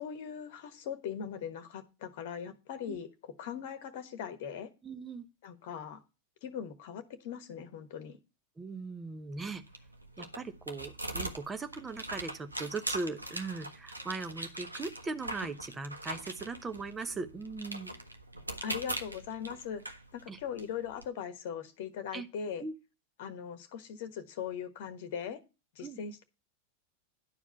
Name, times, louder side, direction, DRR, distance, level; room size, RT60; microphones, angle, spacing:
voice 1, 0.0-4.7 5.4-6.0 6.4-8.2 18.6-22.6 23.2-25.4 25.7-26.2, left 8 dB, 50° left, 11 dB, 1.2 m, -40 dB
voice 2, 4.8-5.3 8.6-9.6 10.2-17.9 20.3-20.4 22.1-22.3 22.6-22.7 25.8-26.0, right 3 dB, 15° right, 9 dB, 0.9 m, -39 dB
sound 1, 9.3-21.0, right 1 dB, 85° right, 1.1 m, -42 dB
11.0 x 4.9 x 5.6 m, 0.29 s
figure-of-eight pair, 90°, 0 cm